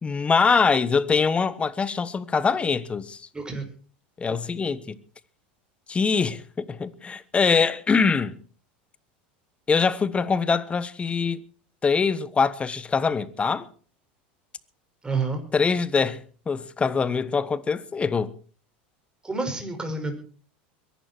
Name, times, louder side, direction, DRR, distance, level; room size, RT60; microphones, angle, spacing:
voice 1, 0.0-3.2 4.2-5.0 5.9-8.4 9.7-11.4 11.8-13.7 15.5-16.2 16.5-18.3, left 5 dB, 20° left, 1.2 m, -23 dB
voice 2, 3.3-3.6 15.0-15.4 19.2-20.1, right 3 dB, 15° right, 5.5 m, -28 dB
22.5 x 11.5 x 4.4 m
hypercardioid pair, 105°, 6 cm